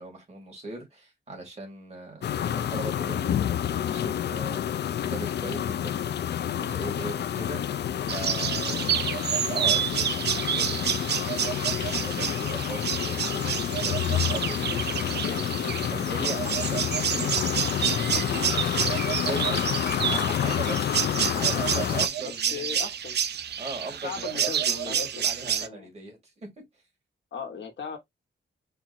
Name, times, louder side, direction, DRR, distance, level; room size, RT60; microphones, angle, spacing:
voice 1, 0.0-4.6 5.0-7.6 8.1-9.0 9.5-11.4 11.7-15.6 15.9-18.5 19.0-21.1 21.3-22.9 23.6-24.3 24.5-26.6, right 2 dB, 35° right, 2.3 m, -39 dB
sound 1, 2.2-22.1, left 10 dB, 65° left, 0.4 m, -29 dB
sound 2, 8.1-25.7, right 9 dB, 65° right, 0.5 m, -29 dB
voice 2, 15.3-15.8 22.2-23.2 24.0-25.9 27.3-28.0, left 6 dB, 85° left, 1.4 m, -38 dB
4.5 x 2.5 x 4.1 m
wide cardioid pair, 150°, 19 cm